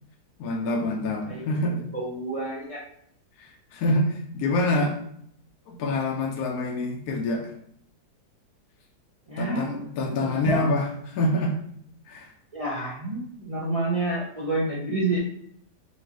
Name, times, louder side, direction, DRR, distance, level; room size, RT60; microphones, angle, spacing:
voice 1, 0.4-1.8 3.4-5.0 5.7-7.5 9.4-11.6 12.1-12.3, left 1 dB, 70° left, 1 dB, 1.1 m, -26 dB
voice 2, 1.3-2.8 9.3-9.9 10.3-10.6 12.5-15.2, right 2 dB, 40° right, -6 dB, 0.5 m, -29 dB
4.5 x 2.8 x 2.8 m, 0.66 s
omnidirectional pair, 1.7 m